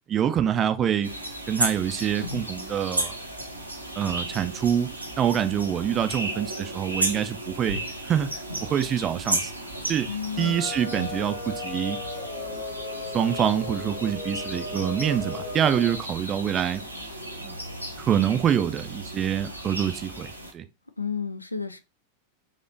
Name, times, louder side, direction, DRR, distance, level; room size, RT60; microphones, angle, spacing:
voice 1, 0.1-1.1 1.5-3.1 4.0-4.9 5.2-7.8 8.1-8.3 8.7-9.5 9.9-10.1 10.4-12.0 13.1-16.8 17.4-17.6 18.0-20.6, right 9 dB, 25° right, 0.4 m, -25 dB
sound 1, 1.0-20.5, right 1 dB, 85° right, 0.7 m, -34 dB
voice 2, 10.1-10.6 10.9-11.2 21.0-21.8, left 6 dB, 85° left, 0.4 m, -32 dB
sound 2, 10.3-16.0, left 3 dB, 60° left, 0.9 m, -36 dB
4.0 x 2.9 x 2.6 m
figure-of-eight pair, 90°, 0 cm